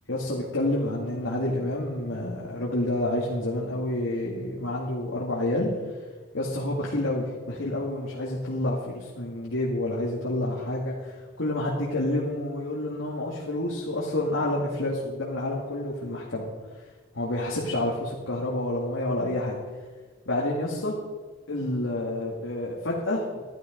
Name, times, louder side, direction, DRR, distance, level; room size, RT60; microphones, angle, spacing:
voice 1, 0.1-5.7 6.3-16.5 17.1-19.6 20.3-21.0 21.5-23.4, left 1 dB, 75° left, -5 dB, 2.2 m, -29 dB
12.5 x 12.0 x 5.2 m, 1.4 s
head